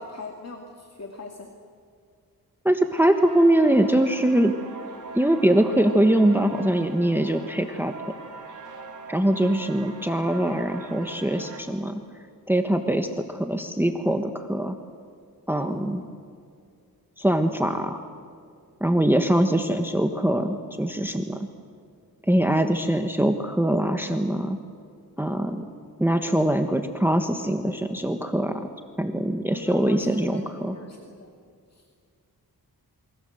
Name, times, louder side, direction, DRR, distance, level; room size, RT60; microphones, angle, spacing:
voice 1, 0.0-1.5 15.6-16.1 29.5-31.3 31.7-31.9, left 3 dB, 45° left, 2 dB, 2.2 m, -41 dB
voice 2, 2.6-4.5 5.1-7.9 9.1-12.0 12.5-14.8 15.5-16.0 17.2-18.0 18.8-21.4 22.3-24.6 25.2-25.7 26.0-28.6 29.0-30.8, right 1 dB, 5° right, 6 dB, 1.2 m, -22 dB
sound 1, 2.9-11.6, right 3 dB, 55° right, 4.2 m, -41 dB
28.0 x 24.0 x 7.9 m, 2.2 s
wide cardioid pair, 125°, 37 cm